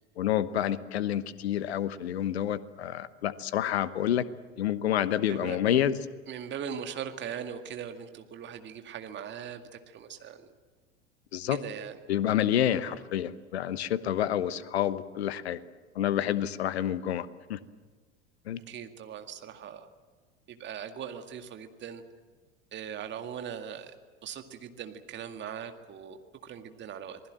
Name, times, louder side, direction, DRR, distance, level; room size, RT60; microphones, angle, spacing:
voice 1, 0.2-4.2 4.6-6.0 11.3-11.6 12.1-15.6 15.9-17.6 18.5-18.6, left 11 dB, 65° left, 16 dB, 1.1 m, -28 dB
voice 2, 5.3-5.9 6.3-10.5 11.5-12.0 12.8-13.0 18.7-19.9 20.5-22.0 22.7-23.9 24.2-27.2, right 8 dB, 30° right, 6 dB, 2.1 m, -40 dB
27.0 x 20.0 x 7.7 m, 1.4 s
figure-of-eight pair, 75°, 34 cm